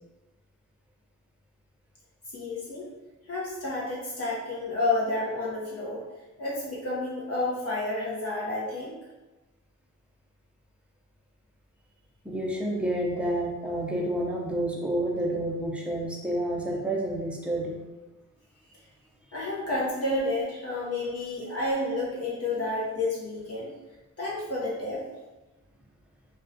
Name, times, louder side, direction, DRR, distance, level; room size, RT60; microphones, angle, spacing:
voice 1, 2.3-2.9 3.3-6.0 6.4-8.9 19.3-23.7 24.2-25.0, left 2 dB, 50° left, -6 dB, 0.6 m, -30 dB
voice 2, 12.2-17.8, right 1 dB, 5° right, -2 dB, 0.5 m, -29 dB
2.3 x 2.1 x 2.5 m, 1.1 s
cardioid pair, 90°, 32 cm